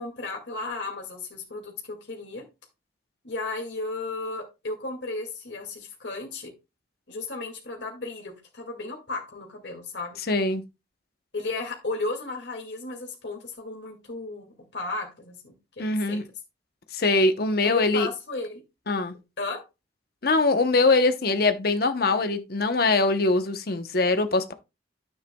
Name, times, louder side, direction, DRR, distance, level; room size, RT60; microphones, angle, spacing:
voice 1, 0.0-2.4 3.2-6.5 7.1-10.2 11.3-16.2 17.6-18.6 19.4-19.6, left 3 dB, 80° left, 2.1 m, -34 dB
voice 2, 10.3-10.6 15.8-16.2 16.9-18.1 18.9-19.1 20.2-24.5, left 3 dB, 60° left, 0.8 m, -22 dB
9.8 x 8.1 x 2.2 m
head